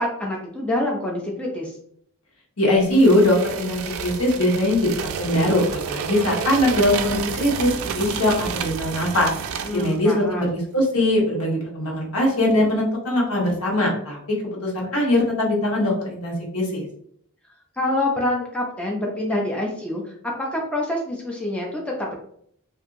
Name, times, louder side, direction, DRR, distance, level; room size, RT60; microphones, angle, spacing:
voice 1, 0.0-1.7 9.6-10.5 17.8-22.1, left 1 dB, 5° left, -2 dB, 0.4 m, -26 dB
voice 2, 2.6-9.3 9.7-16.8, left 1 dB, 85° left, -2 dB, 1.0 m, -21 dB
sound 1, 2.9-10.0, right 7 dB, 75° right, 0.3 m, -30 dB
2.8 x 2.5 x 2.4 m, 0.65 s
head